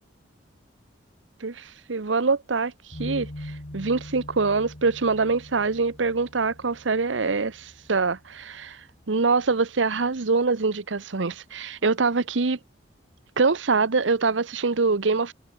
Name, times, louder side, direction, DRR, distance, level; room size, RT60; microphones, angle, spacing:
voice 1, 1.4-3.3 3.7-8.8 9.1-12.6 13.4-15.3, right 4 dB, 80° right, 0.9 m, -24 dB
sound 1, 2.9-10.0, left 1 dB, 50° left, 2.3 m, -43 dB
head